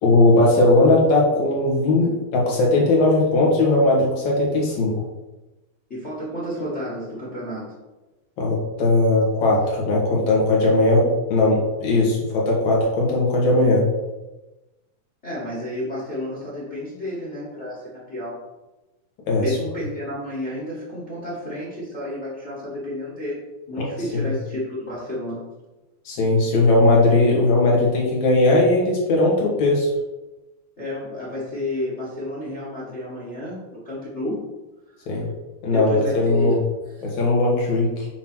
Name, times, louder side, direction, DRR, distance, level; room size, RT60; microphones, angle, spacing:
voice 1, 0.0-4.9 8.4-13.8 19.3-19.6 23.8-23.9 26.1-29.9 35.1-35.2 35.6-36.6 37.0-38.1, left 2 dB, 60° left, -3 dB, 2.2 m, -18 dB
voice 2, 5.9-7.7 15.2-18.4 19.4-23.4 23.7-25.4 30.8-34.4 35.7-36.6 36.9-37.1, left 1 dB, 85° left, -6 dB, 0.6 m, -31 dB
7.4 x 2.9 x 6.0 m, 1.1 s
omnidirectional pair, 4.5 m